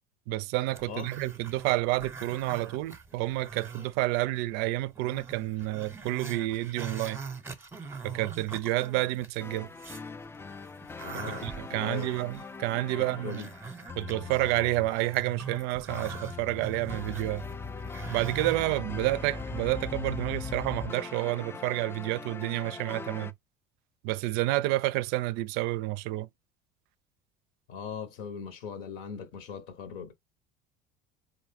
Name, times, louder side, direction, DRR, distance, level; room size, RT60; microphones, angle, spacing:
voice 1, 0.3-7.2 8.0-9.7 11.4-13.4 14.0-17.4 18.1-23.3 24.0-26.3, right 18 dB, 65° right, 0.4 m, -29 dB
Growling, 0.7-4.2 4.6-4.7 5.0-10.1 10.5-18.6, right 5 dB, 15° right, 0.8 m, -43 dB
sound 1, 9.4-23.3, left 4 dB, 15° left, 0.3 m, -40 dB
voice 2, 11.0-12.1 12.9-13.5 27.7-30.1, left 7 dB, 75° left, 1.1 m, -40 dB
3.8 x 2.6 x 3.4 m
supercardioid pair, 90°, 18 cm